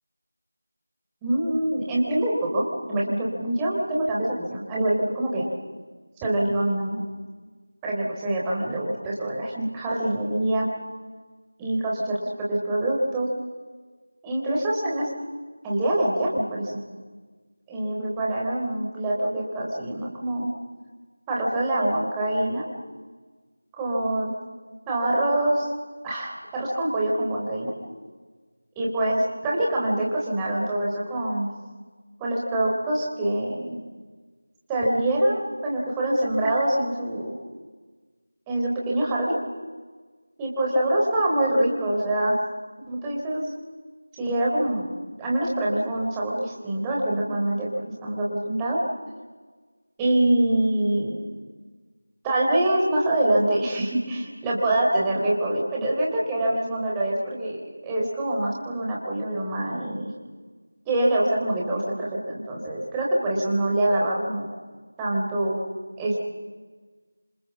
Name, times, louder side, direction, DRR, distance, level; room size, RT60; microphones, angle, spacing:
voice 1, 1.2-5.5 6.2-7.0 7.8-10.7 11.6-13.3 14.2-15.1 15.6-16.8 17.7-20.5 21.3-22.7 23.7-24.3 24.9-25.7 26.0-27.7 28.8-31.5 32.2-33.8 34.7-37.4 38.5-39.4 40.4-42.4 42.8-43.5 44.2-44.9 45.2-48.8 50.0-51.3 52.2-57.6 57.8-60.1 60.9-64.5 65.0-65.6 66.0-66.2, right 1 dB, 10° right, -4 dB, 3.7 m, -25 dB
27.5 x 27.0 x 7.3 m, 1.4 s
figure-of-eight pair, 170°, 0 cm